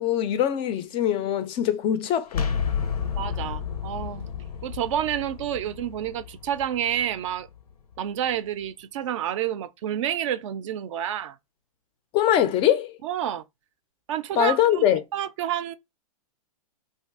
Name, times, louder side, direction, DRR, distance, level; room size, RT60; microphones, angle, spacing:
voice 1, 0.0-2.5 12.1-12.9 14.4-15.0, left 10 dB, 30° left, 0.3 m, -22 dB
sound 1, 2.3-8.0, left 7 dB, 90° left, 0.5 m, -32 dB
voice 2, 3.1-4.3 4.6-7.5 8.0-11.4 13.0-13.4 14.1-14.9 15.1-15.7, right 10 dB, 55° right, 0.4 m, -29 dB
2.6 x 2.3 x 3.4 m
hypercardioid pair, 110°, 19 cm